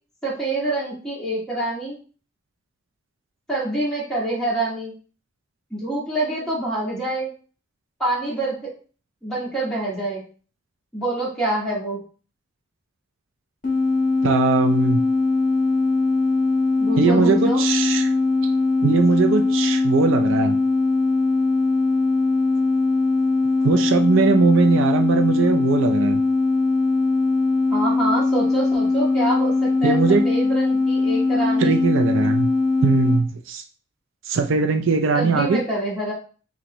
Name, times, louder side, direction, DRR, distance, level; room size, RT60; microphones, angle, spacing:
voice 1, 0.2-2.0 3.5-4.9 5.7-7.3 8.0-8.7 9.2-10.2 10.9-12.0 16.8-17.6 27.7-30.0 30.2-31.8 35.1-36.1, right 2 dB, 5° left, -7 dB, 1.9 m, -26 dB
sound 1, 13.6-33.2, left 3 dB, 40° left, 1.8 m, -20 dB
voice 2, 14.2-15.0 17.0-18.1 18.8-20.6 23.6-26.2 29.8-30.3 31.6-32.5 32.8-33.6 34.3-35.6, right 4 dB, 70° right, 6 dB, 0.4 m, -20 dB
5.8 x 2.7 x 3.0 m, 0.38 s
head